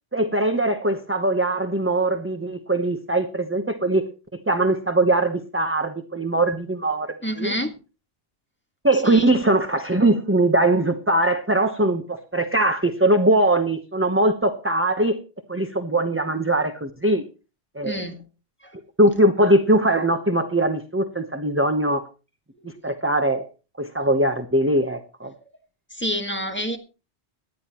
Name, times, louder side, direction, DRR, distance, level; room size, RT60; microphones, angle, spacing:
voice 1, 0.1-4.0 4.5-7.5 8.8-15.2 15.5-17.2 17.7-18.0 19.0-22.0 22.6-23.4 23.8-25.3, right 1 dB, 15° right, 7 dB, 0.9 m, -21 dB
voice 2, 7.2-7.7 9.0-9.3 17.8-18.2 18.6-18.7 22.6-22.7 25.9-26.8, equal, 10° left, 4 dB, 1.6 m, -28 dB
18.5 x 12.0 x 3.0 m, 0.32 s
omnidirectional pair, 1.1 m